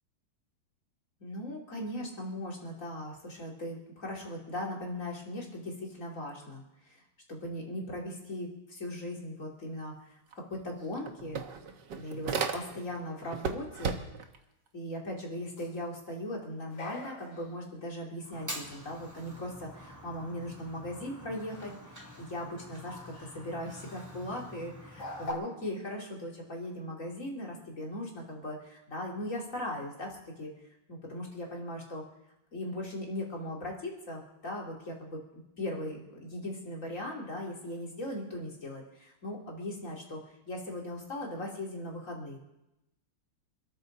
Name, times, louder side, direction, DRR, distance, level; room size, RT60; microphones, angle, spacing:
voice 1, 1.2-7.0 7.3-11.4 11.9-14.0 14.7-30.5 30.9-32.0 32.5-35.2 35.6-42.4, left 1 dB, 40° left, -2 dB, 3.1 m, -39 dB
sound 1, 10.3-10.4 10.7-13.0 13.3-14.4, right 5 dB, 65° right, 1.6 m, -35 dB
sound 2, 10.8-11.9 13.0-13.4 15.3-15.9 16.7-17.8 18.2-18.8 19.3-19.6 21.5-22.1 22.8-23.5 23.8-24.1 24.9-25.3, left 1 dB, 70° left, 3.0 m, -46 dB
Fire, 18.3-25.3, equal, 10° right, 2.1 m, -47 dB
26.5 x 13.5 x 3.9 m, 0.91 s
omnidirectional pair, 2.2 m